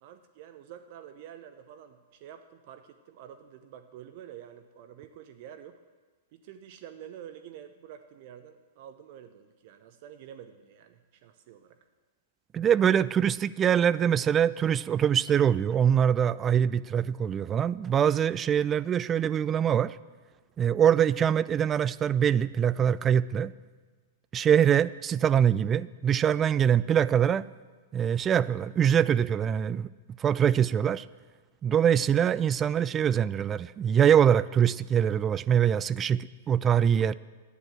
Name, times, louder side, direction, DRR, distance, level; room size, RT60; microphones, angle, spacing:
voice 1, 0.0-5.8 6.3-11.8 12.6-12.7, right 10 dB, 50° right, 9 dB, 0.7 m, -48 dB
voice 2, 12.5-20.0 20.6-23.5 24.3-27.5 27.9-29.9 30.2-31.0 31.6-37.1, right 8 dB, 25° right, 17 dB, 0.3 m, -24 dB
11.5 x 9.7 x 7.4 m, 1.4 s
figure-of-eight pair, 105°, 0 cm